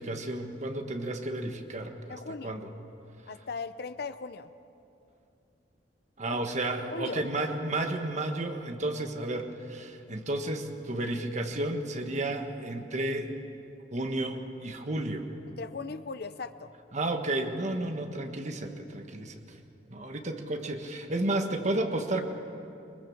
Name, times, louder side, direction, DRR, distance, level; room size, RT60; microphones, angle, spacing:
voice 1, 0.0-2.7 6.2-13.3 13.9-15.3 16.9-19.6 19.9-22.2, right 2 dB, 40° right, 5 dB, 1.5 m, -32 dB
voice 2, 2.1-2.6 3.3-4.5 6.3-6.4 6.9-7.2 15.6-16.7, left 4 dB, 60° left, 11 dB, 0.7 m, -38 dB
21.5 x 21.0 x 7.2 m, 2.7 s
head